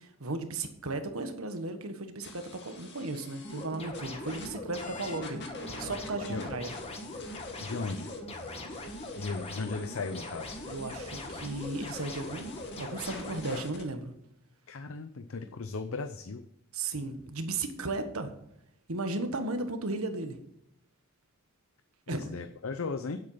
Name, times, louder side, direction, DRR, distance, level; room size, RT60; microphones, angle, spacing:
voice 1, 0.0-5.4 5.8-6.7 10.7-14.1 16.7-18.3 18.9-20.4 22.1-22.3, right 2 dB, 80° right, 7 dB, 1.5 m, -35 dB
sound 1, 2.2-4.5 4.8-13.8, left 3 dB, 55° left, 2.1 m, -47 dB
sound 2, 3.4-13.6, left 1 dB, 30° left, 1.9 m, -41 dB
voice 2, 7.6-8.1 9.2-10.6 14.7-16.5 22.1-23.2, left 4 dB, 70° left, 8 dB, 0.6 m, -36 dB
9.7 x 8.1 x 5.6 m, 0.78 s
head